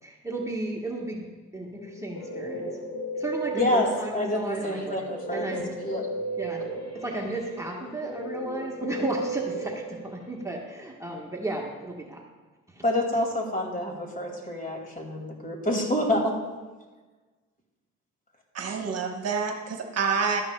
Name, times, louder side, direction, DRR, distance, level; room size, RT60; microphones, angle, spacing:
voice 1, 0.0-2.7 3.2-5.0 5.3-5.7 6.4-6.6 6.9-12.2 12.7-12.8, right 2 dB, 10° right, -2 dB, 1.3 m, -34 dB
Guitar, 1.8-4.3 5.1-10.5, right 1 dB, 55° left, 1.4 m, -35 dB
voice 2, 3.5-5.5 5.8-6.1 12.8-16.3, left 1 dB, 30° left, 1 dB, 2.2 m, -27 dB
voice 3, 18.5-20.4, right 5 dB, 55° right, 3 dB, 1.1 m, -28 dB
12.5 x 10.0 x 2.2 m, 1.3 s
cardioid pair, 90°, 30 cm